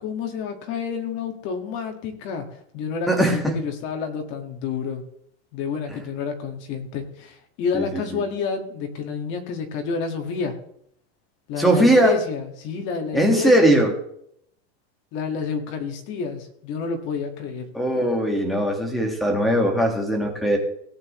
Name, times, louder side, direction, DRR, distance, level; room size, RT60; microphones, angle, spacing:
voice 1, 0.0-5.0 5.5-10.6 11.5-13.8 15.1-17.7, left 5 dB, 35° left, 5 dB, 1.8 m, -29 dB
voice 2, 3.1-3.6 7.7-8.0 11.6-12.2 13.1-13.9 17.7-20.6, right 1 dB, ahead, 1 dB, 1.7 m, -19 dB
18.0 x 8.9 x 3.1 m, 0.69 s
supercardioid pair, 170°, 32 cm